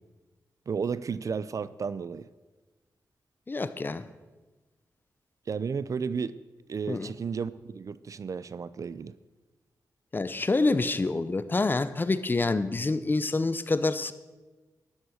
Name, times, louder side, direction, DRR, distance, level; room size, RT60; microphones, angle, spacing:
voice 1, 0.7-2.3 5.5-6.3 6.7-9.2, right 6 dB, 55° right, 0.5 m, -33 dB
voice 2, 3.5-4.0 6.9-7.1 10.1-14.1, left 3 dB, 30° left, 0.8 m, -27 dB
13.0 x 11.0 x 6.5 m
wide cardioid pair, 100°, 7 cm